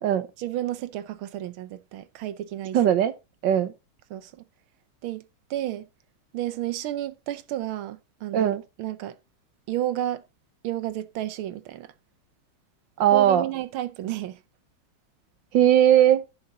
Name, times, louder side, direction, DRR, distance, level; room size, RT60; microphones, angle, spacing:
voice 1, 0.4-2.8 4.1-4.4 5.0-5.2 5.5-5.9 6.3-9.2 9.7-10.2 10.6-11.9 13.1-14.4, right 13 dB, 85° right, 1.6 m, -31 dB
voice 2, 2.7-3.1 3.4-3.7 8.3-8.6 13.0-13.4 15.5-16.2, right 10 dB, 65° right, 1.6 m, -19 dB
14.5 x 5.5 x 3.8 m
omnidirectional pair, 2.2 m